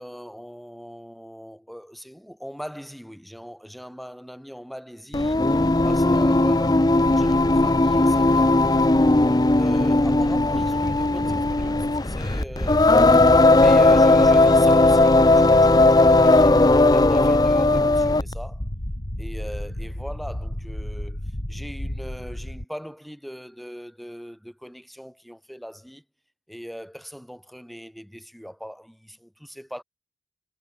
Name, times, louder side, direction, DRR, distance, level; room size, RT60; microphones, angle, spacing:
voice 1, 0.0-9.0 9.5-18.7 19.2-21.2 21.5-26.0 26.5-29.8, equal, ahead, 5.5 m, -40 dB
Singing, 5.1-18.3, left 2 dB, 20° left, 0.6 m, -17 dB
sound 1, 12.1-22.6, left 1 dB, 50° left, 2.8 m, -33 dB
head